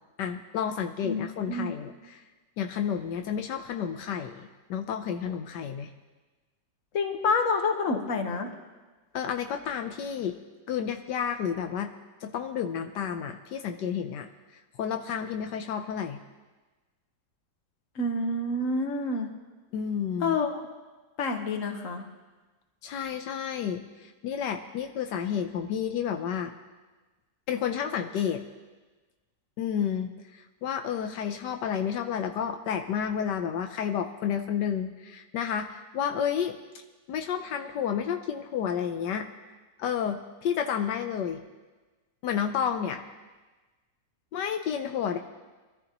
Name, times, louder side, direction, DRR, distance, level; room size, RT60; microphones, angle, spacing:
voice 1, 0.2-2.2 2.6-5.9 9.1-10.4 10.7-11.9 12.2-14.3 14.8-16.2 19.7-20.4 22.8-26.5 27.5-28.4 29.6-36.6 37.1-39.3 39.8-41.4 42.2-43.0 44.3-45.2, left 8 dB, 80° left, 6 dB, 1.4 m, -31 dB
voice 2, 1.0-1.7 6.9-8.5 17.9-19.3 20.2-20.6 21.2-22.1, left 3 dB, 50° left, 5 dB, 1.5 m, -28 dB
24.0 x 13.5 x 3.0 m, 1.3 s
omnidirectional pair, 1.8 m